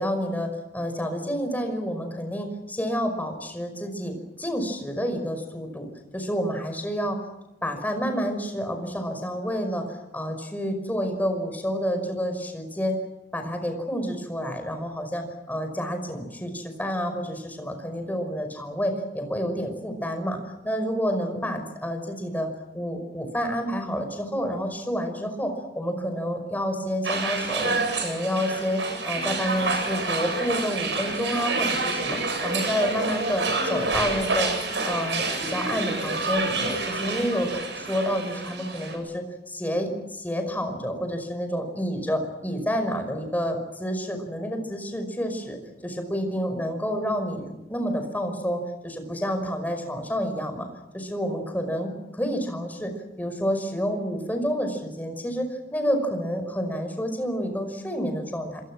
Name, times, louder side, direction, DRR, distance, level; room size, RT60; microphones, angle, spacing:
voice 1, 0.0-5.9 6.1-7.2 7.6-13.0 13.3-27.8 28.0-34.5 34.9-37.5 37.8-50.7 50.9-58.6, equal, 10° left, 5 dB, 5.5 m, -29 dB
sound 1, 27.0-39.0, right 3 dB, 85° right, 7.8 m, -28 dB
28.0 x 26.5 x 6.3 m, 0.94 s
head